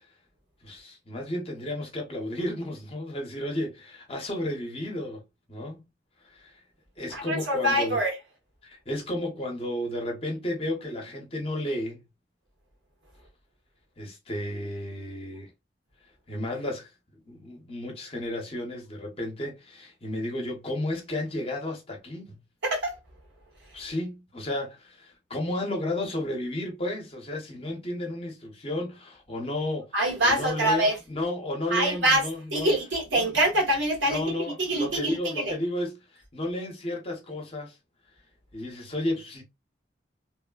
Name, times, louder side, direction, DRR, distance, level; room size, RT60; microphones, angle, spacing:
voice 1, 0.6-5.2 5.5-5.8 6.2-6.6 7.0-8.0 8.6-12.0 14.0-15.5 16.3-16.9 17.3-22.4 23.7-29.9 30.2-32.7 33.2-33.3 34.1-37.8 38.5-39.4, left 1 dB, 30° left, 0.8 m, -33 dB
voice 2, 7.1-8.1 22.6-23.0 29.9-31.0 31.7-32.2 32.5-35.5, right 1 dB, 85° right, 1.2 m, -25 dB
3.1 x 2.1 x 2.2 m
head